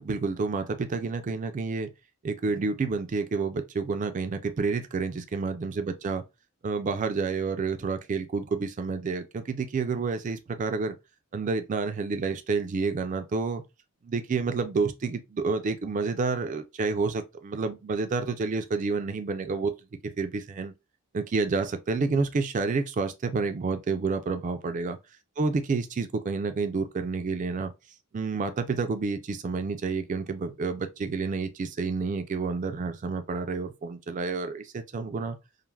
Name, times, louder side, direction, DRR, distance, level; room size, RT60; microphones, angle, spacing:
voice 1, 0.0-1.9 2.2-6.2 6.6-11.0 11.3-13.6 14.0-19.7 20.0-20.7 21.1-25.0 25.4-27.7 28.1-35.4, right 4 dB, 35° right, 0.3 m, -29 dB
3.2 x 2.0 x 2.2 m
head